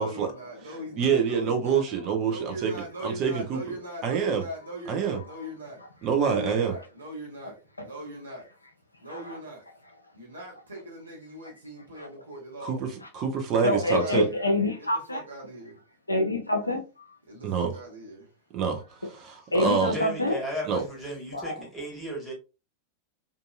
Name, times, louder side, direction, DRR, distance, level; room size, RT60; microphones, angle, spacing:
voice 1, 0.0-1.8 2.2-5.8 6.2-8.5 9.0-9.6 10.1-12.9 13.6-14.4 14.8-15.8 17.3-18.3, equal, 75° right, 1.1 m, -40 dB
voice 2, 1.0-2.7 3.0-3.6 4.0-4.4 4.9-5.2 6.0-6.7 12.6-12.9 13.1-14.3 17.4-17.7 18.5-18.8 19.1-20.0 20.7-20.8, right 6 dB, 35° right, 0.7 m, -26 dB
voice 3, 13.6-15.2 16.1-16.8 19.5-20.4 21.3-21.6, left 1 dB, 85° left, 0.5 m, -26 dB
voice 4, 19.9-22.3, equal, 5° left, 1.3 m, -35 dB
2.6 x 2.6 x 2.4 m
figure-of-eight pair, 90°, 0 cm